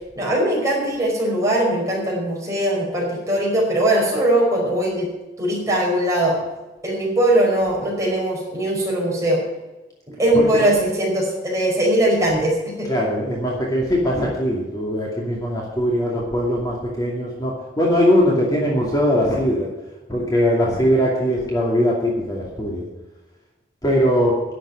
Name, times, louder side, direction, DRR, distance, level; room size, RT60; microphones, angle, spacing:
voice 1, 0.1-5.1 5.4-6.4 6.8-9.4 10.2-12.9, right 1 dB, 15° right, -3 dB, 5.1 m, -20 dB
voice 2, 10.3-10.7 12.9-19.7 20.1-22.8 23.8-24.4, equal, 20° left, -3 dB, 2.5 m, -20 dB
11.5 x 7.8 x 9.7 m, 1.1 s
head